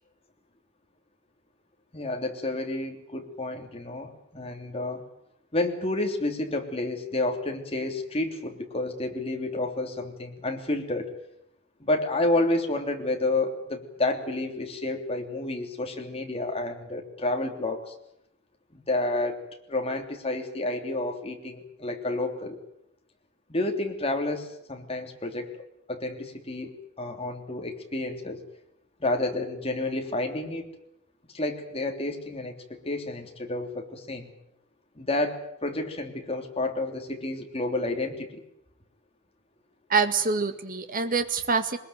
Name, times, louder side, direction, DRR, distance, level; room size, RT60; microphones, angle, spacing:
voice 1, 1.9-5.0 5.5-11.1 11.8-17.9 18.7-22.6 23.5-25.5 25.9-26.7 27.0-28.4 29.0-30.7 31.3-34.3 35.0-38.4, left 2 dB, 30° left, 3 dB, 3.2 m, -30 dB
voice 2, 39.9-41.8, right 4 dB, 45° right, 9 dB, 1.9 m, -25 dB
22.5 x 21.0 x 9.2 m, 0.79 s
head